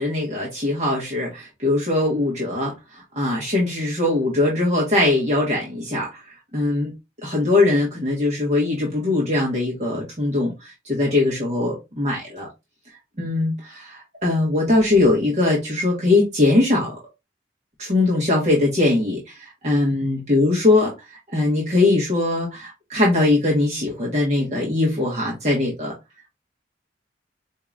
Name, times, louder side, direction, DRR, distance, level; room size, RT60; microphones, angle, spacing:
voice 1, 0.0-2.7 3.2-6.1 6.5-6.9 7.2-10.5 10.9-12.5 13.2-17.0 17.8-19.2 19.6-20.9 21.3-25.9, left 2 dB, 40° right, 1.2 m, -21 dB
4.7 x 2.8 x 2.4 m
head